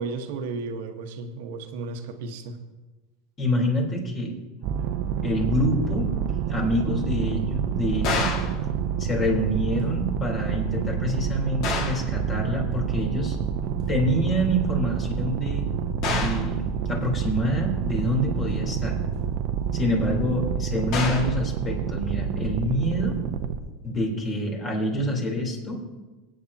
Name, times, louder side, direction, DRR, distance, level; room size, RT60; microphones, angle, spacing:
voice 1, 0.0-2.6, right 4 dB, 75° right, 6 dB, 1.2 m, -33 dB
voice 2, 3.4-4.3 5.2-6.1 6.5-8.3 9.0-13.4 13.6-15.7 16.1-19.0 19.7-23.2 23.8-25.8, equal, 30° left, 0 dB, 3.5 m, -26 dB
sound 1, 4.6-23.6, right 8 dB, 60° right, 0.8 m, -28 dB
sound 2, 8.0-8.6 11.6-12.1 16.0-16.5 20.9-21.4, left 4 dB, 55° left, 1.9 m, -28 dB
24.0 x 9.2 x 2.8 m, 1.2 s
supercardioid pair, 110°, 0 cm